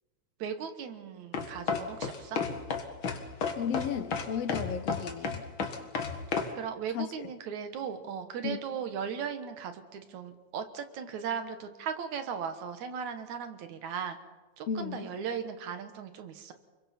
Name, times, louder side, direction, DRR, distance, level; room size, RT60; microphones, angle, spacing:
voice 1, 0.4-2.4 6.5-14.2 14.6-16.5, right 7 dB, 70° right, 8 dB, 2.7 m, -37 dB
sound 1, 1.3-6.5, left 5 dB, 50° left, 2.0 m, -32 dB
voice 2, 3.6-5.4 6.9-7.3 8.4-8.6 14.7-15.1, left 7 dB, 65° left, 10 dB, 1.9 m, -34 dB
29.5 x 22.5 x 4.4 m, 1.3 s
omnidirectional pair, 3.5 m